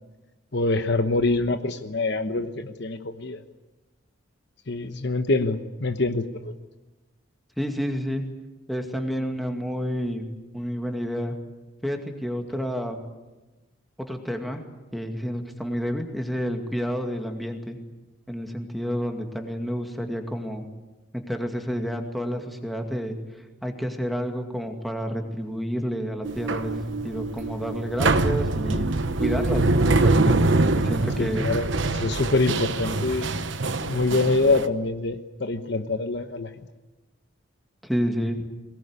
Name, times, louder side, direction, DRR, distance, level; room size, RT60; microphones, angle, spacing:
voice 1, 0.5-3.4 4.7-6.5 31.2-33.5 33.8-36.5, left 3 dB, 55° left, 8 dB, 1.1 m, -25 dB
voice 2, 7.6-8.2 8.7-10.2 10.5-11.3 11.8-13.0 14.1-14.6 14.9-17.8 18.3-20.7 21.3-23.2 23.6-28.9 29.2-30.4 30.8-31.5 37.8-38.5, equal, ahead, 3 dB, 2.3 m, -29 dB
sound 1, 26.2-34.7, right 2 dB, 60° right, 1.1 m, -24 dB
22.5 x 19.0 x 9.8 m, 1.1 s
head